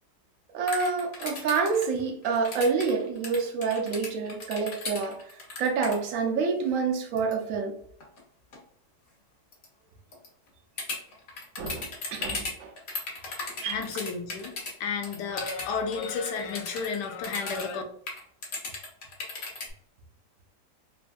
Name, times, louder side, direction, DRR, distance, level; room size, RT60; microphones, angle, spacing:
voice 1, 0.5-7.8 11.6-12.7 13.6-13.8, right 5 dB, 75° right, 0.7 m, -28 dB
sound 1, 0.7-6.0 7.2-7.3 8.0-8.2 8.5-8.6 9.5-9.6 10.1-10.3 10.8-14.7 15.0-17.7 18.1-19.7, left 3 dB, 60° left, 1.2 m, -36 dB
voice 2, 13.2-17.8, left 5 dB, 75° left, 1.1 m, -32 dB
3.2 x 2.5 x 2.2 m
omnidirectional pair, 1.9 m